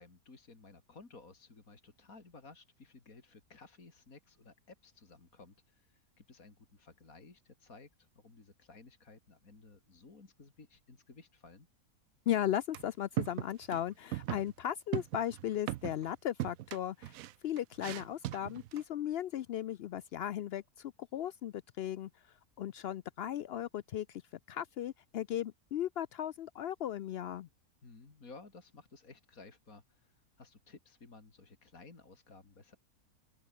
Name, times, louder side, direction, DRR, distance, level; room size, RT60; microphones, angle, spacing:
voice 1, 0.0-11.7 27.8-32.8, left 3 dB, 65° left, 3.6 m, -56 dB
voice 2, 12.3-17.2 17.4-22.1 22.6-24.2 24.5-27.5, left 11 dB, 85° left, 0.5 m, -36 dB
sound 1, 12.7-12.9 13.2-13.8 14.1-14.5 14.9-16.1 16.4-18.8, right 15 dB, 70° right, 1.0 m, -38 dB
open air
omnidirectional pair, 1.6 m